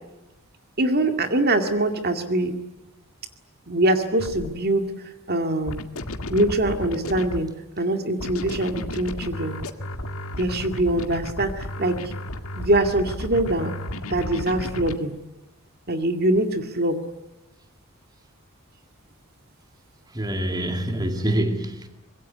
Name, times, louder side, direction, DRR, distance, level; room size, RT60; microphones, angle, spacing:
voice 1, 0.8-2.5 3.7-4.9 5.3-5.8 6.3-7.5 7.8-9.6 10.4-12.0 12.6-13.7 14.1-15.1 15.9-17.0, right 1 dB, 45° right, 2.2 m, -23 dB
sound 1, 4.1-4.5 5.7-7.5 8.2-14.9, left 1 dB, 70° left, 2.0 m, -33 dB
voice 2, 20.1-21.9, right 1 dB, 20° right, 2.1 m, -26 dB
25.5 x 22.0 x 9.6 m
head